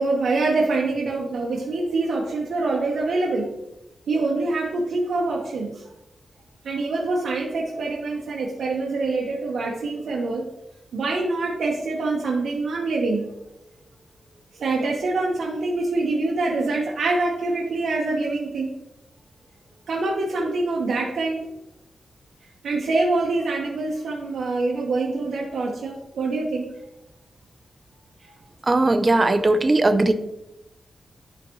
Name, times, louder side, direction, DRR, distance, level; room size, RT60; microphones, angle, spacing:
voice 1, 0.0-3.5 4.1-5.8 6.6-10.4 10.9-13.2 14.6-18.7 19.9-21.5 22.6-26.7 28.2-28.4, right 3 dB, 80° right, -2 dB, 1.0 m, -25 dB
voice 2, 28.7-30.1, right 2 dB, 25° right, 9 dB, 0.5 m, -18 dB
11.5 x 4.0 x 3.0 m, 0.88 s
wide cardioid pair, 155°, 0 cm